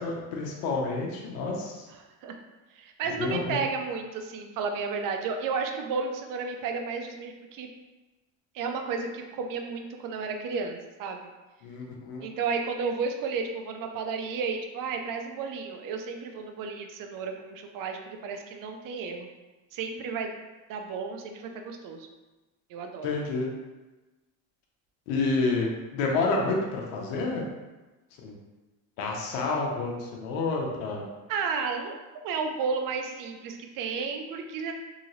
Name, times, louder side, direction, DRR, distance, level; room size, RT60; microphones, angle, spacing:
voice 1, 0.0-1.9 3.2-3.6 11.6-12.2 23.0-23.5 25.1-25.7 25.9-27.4 28.2-28.3 29.0-31.0, left 3 dB, 85° left, -1 dB, 0.8 m, -29 dB
voice 2, 1.9-2.3 2.7-7.7 8.5-11.2 12.2-19.3 19.7-20.3 20.7-22.1 22.7-23.1 31.3-31.9 32.2-34.7, right 5 dB, 50° right, 4 dB, 0.5 m, -32 dB
2.8 x 2.8 x 2.7 m, 1.2 s
supercardioid pair, 90°, 42 cm